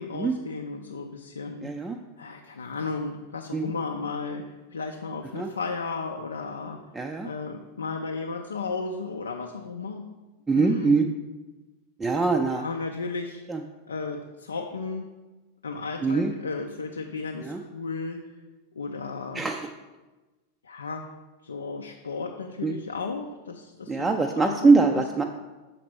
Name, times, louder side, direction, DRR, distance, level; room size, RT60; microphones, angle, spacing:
voice 1, 0.0-1.7 2.2-6.8 7.2-10.1 10.5-11.0 12.5-13.4 13.9-15.1 15.6-18.2 18.7-19.5 20.6-21.1 21.4-25.0, left 4 dB, 70° left, 3 dB, 0.5 m, -34 dB
voice 2, 1.6-2.0 3.5-3.7 5.3-5.5 6.9-7.3 10.5-11.1 12.0-12.6 13.5-13.6 16.0-16.3 17.4-17.6 19.3-19.7 22.6-22.7 23.9-25.2, right 4 dB, 10° right, 3 dB, 0.4 m, -23 dB
6.6 x 4.2 x 5.9 m, 1.2 s
figure-of-eight pair, 90°, 0 cm